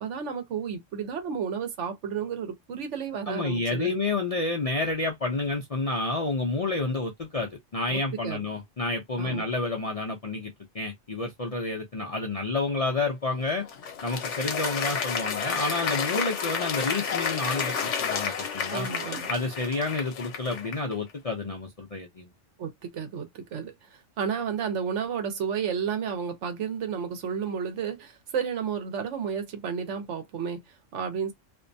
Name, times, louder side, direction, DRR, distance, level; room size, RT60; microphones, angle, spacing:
voice 1, 0.0-3.9 7.9-8.4 9.2-9.5 18.7-19.2 22.6-31.3, right 7 dB, 70° right, 1.0 m, -32 dB
voice 2, 3.3-13.7 14.0-18.9 19.3-22.3, left 3 dB, 50° left, 0.4 m, -29 dB
Applause, 13.3-20.9, left 6 dB, 70° left, 1.1 m, -31 dB
2.6 x 2.2 x 2.5 m
omnidirectional pair, 1.3 m